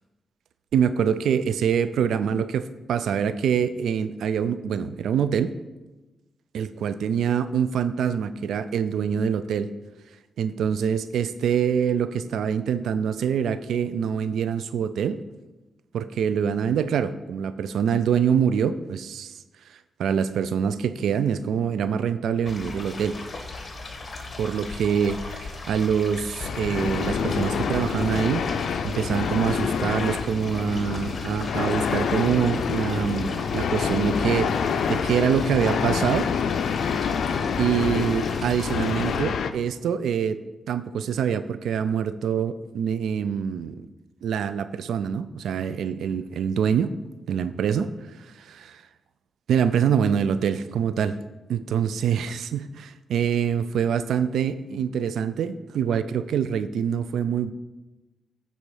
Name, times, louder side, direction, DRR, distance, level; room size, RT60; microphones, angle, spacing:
voice 1, 0.7-5.5 6.5-9.7 10.4-15.2 15.9-19.3 20.0-23.2 24.4-28.4 28.8-36.3 37.2-37.3 37.6-43.9 44.2-46.9 47.3-47.9 48.2-48.8 49.5-51.2 51.5-57.5, right 7 dB, 85° right, 13 dB, 0.3 m, -25 dB
sound 1, 22.5-39.2, left 3 dB, 45° left, 1.2 m, -37 dB
sound 2, 26.4-39.5, left 6 dB, 80° left, 0.4 m, -27 dB
9.9 x 4.0 x 4.8 m, 1.1 s
cardioid pair, 75°, 0 cm